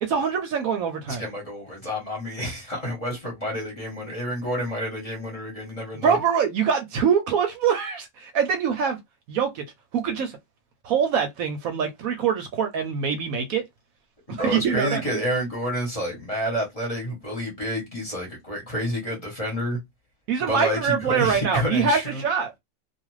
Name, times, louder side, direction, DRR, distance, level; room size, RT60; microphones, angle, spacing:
voice 1, 0.0-1.2 6.0-9.0 9.3-9.6 9.9-10.4 10.8-13.6 14.3-15.2 20.3-22.5, right 6 dB, 70° right, 1.0 m, -24 dB
voice 2, 1.1-6.2 14.3-19.8 20.5-22.3, equal, 25° left, 1.0 m, -29 dB
2.5 x 2.4 x 3.1 m
omnidirectional pair, 1.6 m